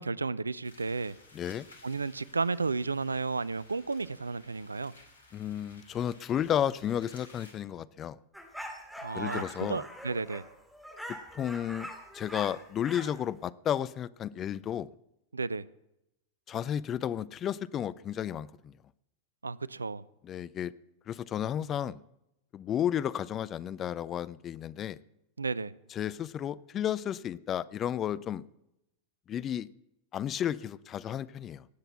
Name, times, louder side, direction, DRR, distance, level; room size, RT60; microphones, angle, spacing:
voice 1, 0.0-1.2 1.8-4.9 9.0-10.5 15.3-15.7 19.4-20.0 25.4-25.7, right 4 dB, 80° right, 21 dB, 0.4 m, -33 dB
sound 1, 0.6-7.5, left 2 dB, 75° left, 2.7 m, -57 dB
voice 2, 1.3-1.7 5.3-8.2 9.1-9.8 11.3-11.9 12.1-14.9 16.5-18.7 20.2-20.7 21.1-22.0 22.5-25.0 25.9-28.4 29.3-29.7 30.1-31.7, left 10 dB, 30° left, 18 dB, 0.5 m, -32 dB
sound 2, 8.3-13.2, equal, ahead, 2.4 m, -43 dB
18.0 x 7.9 x 7.1 m, 0.86 s
figure-of-eight pair, 90°, 0 cm